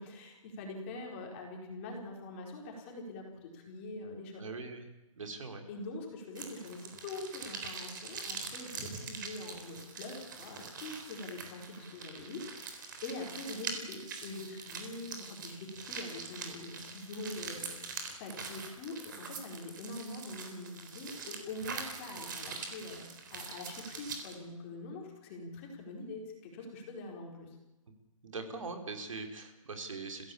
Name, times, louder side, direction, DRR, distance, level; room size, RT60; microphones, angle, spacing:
voice 1, 0.0-4.5 5.7-27.5, left 2 dB, 20° left, 1 dB, 4.5 m, -44 dB
voice 2, 4.4-4.9 5.2-5.7 28.2-30.3, right 3 dB, 65° right, 5 dB, 4.7 m, -41 dB
sound 1, 6.3-24.3, right 5 dB, 35° right, 3.9 m, -44 dB
29.5 x 16.5 x 8.6 m, 1.0 s
hypercardioid pair, 170°, 18 cm